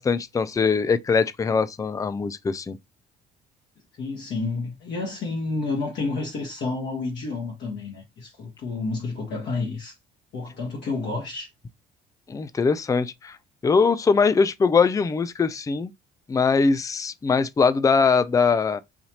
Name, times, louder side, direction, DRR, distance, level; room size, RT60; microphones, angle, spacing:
voice 1, 0.0-2.8 12.3-13.4 13.6-15.9 16.3-18.8, left 5 dB, 15° left, 0.4 m, -21 dB
voice 2, 4.0-9.9 10.3-11.5, left 3 dB, 55° left, 1.3 m, -30 dB
4.1 x 2.7 x 3.0 m
hypercardioid pair, 60°, 21 cm